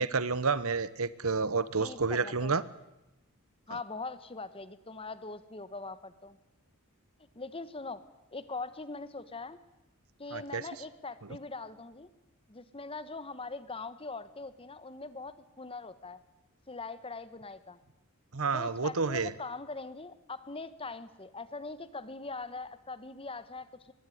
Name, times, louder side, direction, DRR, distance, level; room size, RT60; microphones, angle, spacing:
voice 1, 0.0-2.6 10.3-10.6 18.3-19.3, right 4 dB, 65° right, 17 dB, 1.0 m, -29 dB
voice 2, 1.8-2.6 3.7-6.4 7.3-8.0 8.3-9.6 10.2-12.1 12.5-16.2 16.7-17.8 18.5-23.9, left 3 dB, 25° left, 13 dB, 1.3 m, -42 dB
23.5 x 21.5 x 9.4 m, 0.96 s
head